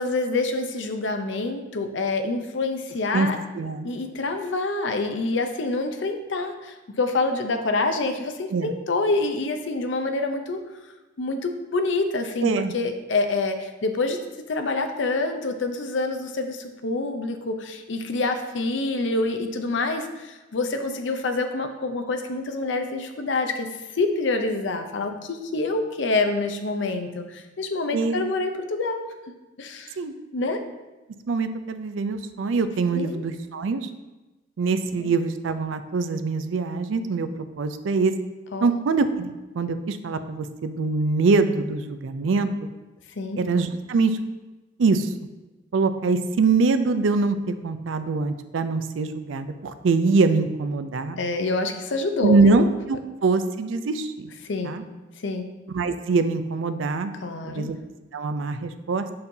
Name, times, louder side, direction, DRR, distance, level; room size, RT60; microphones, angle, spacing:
voice 1, 0.0-3.4 3.8-10.6 11.2-14.2 14.5-23.7 23.9-29.1 29.6-30.0 30.3-30.6 32.9-33.2 35.0-35.1 38.5-38.7 43.2-43.4 51.2-52.6 54.4-54.8 55.2-55.5 57.2-57.7, left 3 dB, 70° left, 6 dB, 0.6 m, -27 dB
voice 2, 3.6-3.9 8.5-8.7 12.4-12.7 27.9-28.2 30.0-30.1 31.3-33.9 34.6-37.3 37.6-38.2 38.6-42.5 43.4-44.2 44.8-45.1 45.7-51.2 52.2-54.3 54.6-54.8 55.7-57.1 57.4-57.8 58.1-59.1, right 4 dB, 80° right, 10 dB, 0.4 m, -23 dB
6.8 x 5.4 x 2.7 m, 1.1 s
head